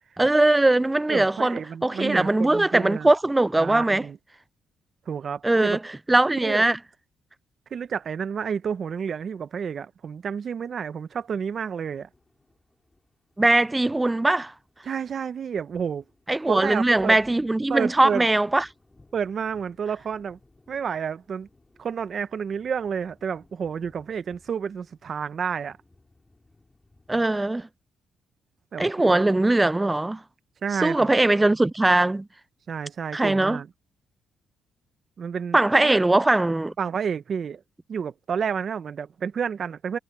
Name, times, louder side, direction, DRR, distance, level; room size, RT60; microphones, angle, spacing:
voice 1, 0.2-4.1 5.4-5.8 6.1-6.8 13.4-14.5 16.3-18.6 27.1-27.7 28.8-30.2 30.8-32.3 33.1-33.6 35.5-36.7, right 2 dB, 15° right, 0.4 m, -21 dB
voice 2, 1.1-3.1 3.6-4.2 5.1-5.8 6.4-6.7 7.7-12.1 14.8-16.0 16.5-17.2 17.7-18.2 19.1-20.4 20.7-21.5 21.8-25.8 28.7-28.8 29.2-29.3 30.6-31.1 32.7-33.7 35.2-36.0 36.8-37.6 37.9-40.0, right 7 dB, 50° right, 1.1 m, -30 dB
sound 1, 11.1-27.6, left 2 dB, 15° left, 4.5 m, -60 dB
cardioid pair, 90°, 0 cm